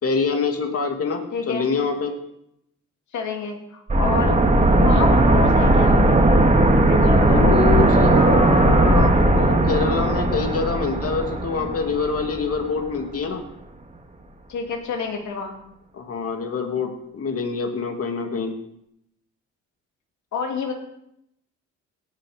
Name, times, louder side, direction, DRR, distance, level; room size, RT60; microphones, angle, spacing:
voice 1, 0.0-2.1 7.3-13.4 15.9-18.5, left 4 dB, 50° left, 4 dB, 2.5 m, -25 dB
voice 2, 1.3-1.7 3.1-4.4 4.8-6.0 6.8-7.4 14.5-15.6 20.3-20.7, left 5 dB, 70° left, 3 dB, 2.7 m, -28 dB
sound 1, 3.9-12.6 12.9-13.0, right 1 dB, 25° right, 1.7 m, -17 dB
18.0 x 7.3 x 5.2 m, 0.77 s
cardioid pair, 90°, 30 cm